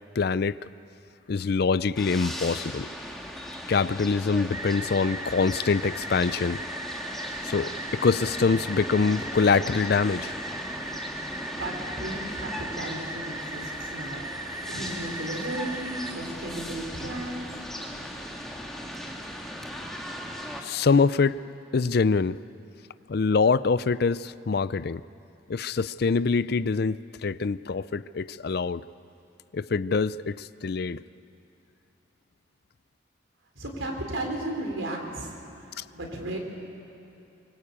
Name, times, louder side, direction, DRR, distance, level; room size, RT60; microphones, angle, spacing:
voice 1, 0.2-0.6 1.3-2.9 3.7-6.6 7.4-10.4 20.6-21.4 21.7-22.4 23.1-25.0 25.5-28.8 29.5-31.0 35.8-35.9, left 4 dB, 55° left, 17 dB, 0.4 m, -24 dB
sound 1, 1.9-20.6, equal, ahead, 2.0 m, -38 dB
sound 2, 4.5-16.1, right 2 dB, 15° right, 0.6 m, -38 dB
voice 2, 11.5-14.3 14.7-17.6 33.6-36.4, right 1 dB, 90° right, 2 dB, 4.2 m, -35 dB
24.0 x 21.0 x 8.7 m, 2.9 s
head